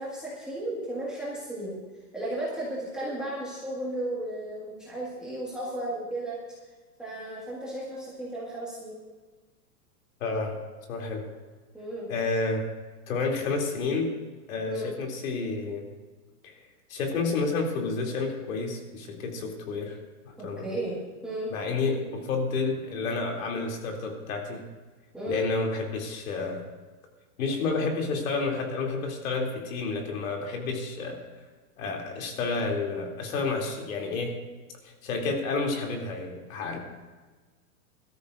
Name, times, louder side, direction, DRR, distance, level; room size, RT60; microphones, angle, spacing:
voice 1, 0.0-1.8 2.1-6.4 7.0-9.0 11.7-12.1 14.7-14.9 20.4-21.0 21.2-21.5 25.1-25.5, right 1 dB, ahead, -8 dB, 1.9 m, -34 dB
voice 2, 10.2-10.6 10.9-11.2 12.1-12.6 13.1-14.2 14.5-15.8 16.4-16.5 16.9-20.0 20.4-20.7 21.5-24.6 25.3-26.6 27.4-31.2 31.8-34.4 34.8-36.8, left 3 dB, 65° left, 1 dB, 3.1 m, -30 dB
20.5 x 13.0 x 2.6 m, 1.3 s
supercardioid pair, 165°, 44 cm